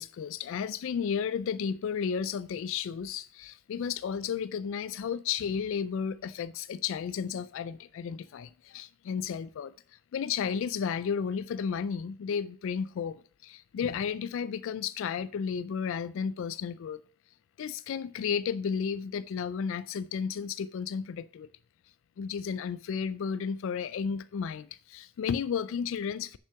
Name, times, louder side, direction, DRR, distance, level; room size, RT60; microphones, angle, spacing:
voice 1, 0.0-17.0 17.6-21.5 22.2-26.4, left 7 dB, 65° left, 0.3 m, -33 dB
6.8 x 5.7 x 5.8 m
head